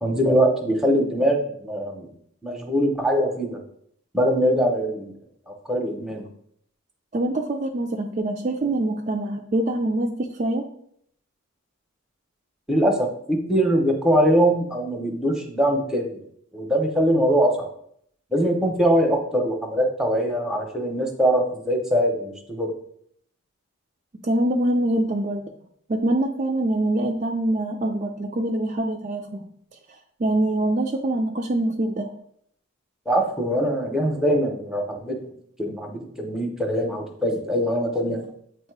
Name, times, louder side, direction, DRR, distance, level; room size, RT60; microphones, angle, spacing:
voice 1, 0.0-2.1 2.4-3.6 4.1-5.1 5.5-6.2 12.7-16.2 16.5-17.7 18.3-22.7 33.1-35.2 35.6-38.2, equal, ahead, 2 dB, 0.7 m, -22 dB
voice 2, 7.1-10.7 24.2-25.4 25.9-29.3 30.2-32.1, right 1 dB, 35° right, 3 dB, 0.3 m, -24 dB
8.0 x 2.7 x 4.6 m, 0.69 s
head